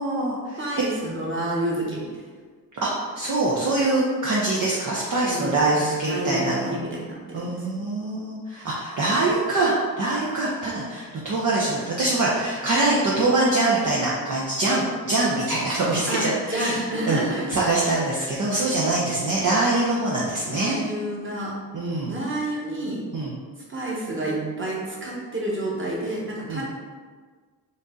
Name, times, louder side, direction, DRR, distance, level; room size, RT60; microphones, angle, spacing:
voice 1, 0.0-0.6 2.8-6.8 7.3-16.8 17.0-17.2 17.5-20.8 21.7-22.1 23.1-23.3 26.5-26.7, right 2 dB, 45° right, -5 dB, 0.9 m, -24 dB
voice 2, 0.6-2.1 5.2-7.8 16.1-17.6 20.4-21.5 22.1-23.0 23.7-26.7, right 1 dB, 30° right, -4 dB, 1.4 m, -29 dB
3.7 x 2.7 x 3.8 m, 1.5 s
supercardioid pair, 50°, 43 cm